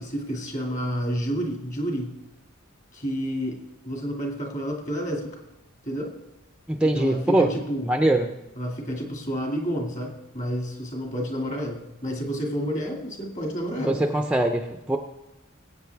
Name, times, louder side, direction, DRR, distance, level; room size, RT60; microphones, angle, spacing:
voice 1, 0.0-2.1 2.9-5.3 5.9-6.1 6.8-7.9 8.6-14.0, equal, 35° left, 1 dB, 2.2 m, -30 dB
voice 2, 6.7-7.5 7.8-8.3 13.8-15.0, right 1 dB, 5° right, 5 dB, 0.5 m, -22 dB
21.0 x 8.5 x 3.5 m, 0.96 s
head